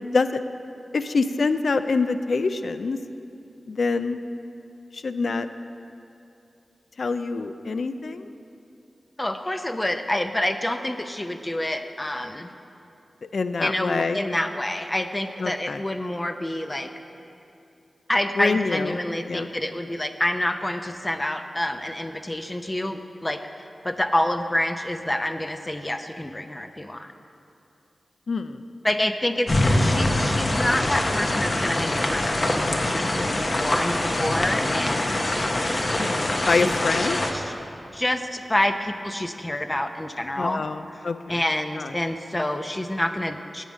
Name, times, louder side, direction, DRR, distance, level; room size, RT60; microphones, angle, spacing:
voice 1, 0.9-3.0 3.7-4.2 4.9-5.5 7.0-8.3 13.2-14.2 15.4-15.8 18.4-18.9 19.3-19.5 28.3-28.6 36.0-36.2 36.5-37.2 40.4-41.4 41.8-41.9, left 4 dB, 70° left, 11 dB, 0.4 m, -25 dB
voice 2, 9.2-12.5 13.6-16.9 18.1-27.1 28.8-35.2 36.4-37.5 37.9-40.7 40.9-43.6, left 1 dB, 25° left, 7 dB, 0.6 m, -28 dB
sound 1, 29.5-37.3, left 1 dB, 45° left, 0.9 m, -24 dB
9.0 x 8.1 x 6.3 m, 2.7 s
cardioid pair, 55°, 0 cm